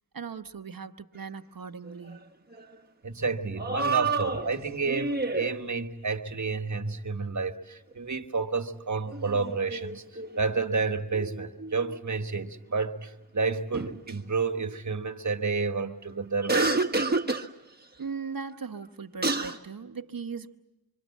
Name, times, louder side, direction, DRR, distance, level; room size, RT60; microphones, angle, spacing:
voice 1, 0.1-2.3 3.8-3.9 18.0-20.6, right 5 dB, 65° right, 7 dB, 1.1 m, -38 dB
sound 1, 1.9-2.2 2.5-2.6 3.6-5.6 9.1-10.7 11.1-12.0 13.7-14.1 16.4-17.5 18.8-18.9 19.2-19.6, right 3 dB, 25° right, 1.4 m, -29 dB
voice 2, 3.0-17.1, right 4 dB, 50° right, 5 dB, 1.5 m, -30 dB
26.5 x 24.0 x 7.3 m, 1.0 s
wide cardioid pair, 50°, 37 cm